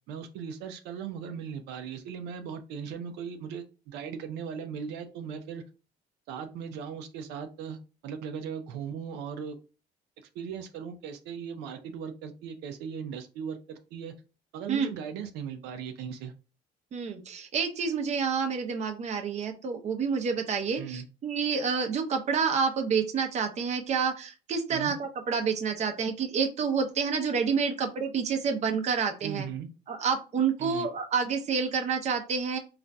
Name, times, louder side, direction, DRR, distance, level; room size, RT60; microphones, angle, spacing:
voice 1, 0.1-5.6 6.3-7.8 8.0-9.6 10.2-14.1 14.5-16.3 20.8-21.1 24.7-24.9 29.2-29.7 30.6-30.9, right 7 dB, 90° right, 0.5 m, -38 dB
voice 2, 16.9-29.5 29.9-32.6, right 6 dB, 40° right, 0.6 m, -28 dB
3.9 x 2.4 x 2.2 m
cardioid pair, 110°, 17 cm